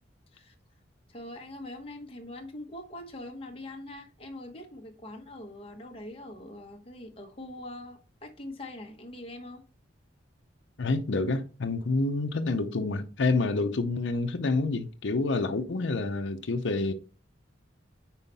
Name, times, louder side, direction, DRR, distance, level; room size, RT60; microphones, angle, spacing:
voice 1, 1.1-9.6, left 1 dB, 30° left, 1.1 m, -43 dB
voice 2, 10.8-16.9, left 3 dB, 75° left, 0.6 m, -28 dB
5.6 x 4.5 x 4.0 m
head